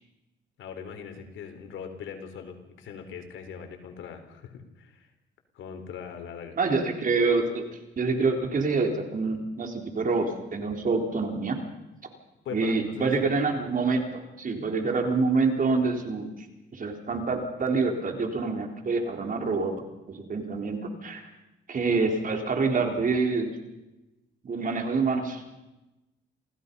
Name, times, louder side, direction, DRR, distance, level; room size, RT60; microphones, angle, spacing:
voice 1, 0.6-5.1 5.5-6.6 12.4-13.3, left 7 dB, 75° left, 6 dB, 3.8 m, -41 dB
voice 2, 6.6-7.7 8.0-11.6 12.5-16.3 16.7-19.8 20.1-21.2 21.7-23.5 24.4-25.4, right 4 dB, 45° right, 3 dB, 4.0 m, -26 dB
28.0 x 17.0 x 5.5 m, 0.98 s
cardioid pair, 90°, 20 cm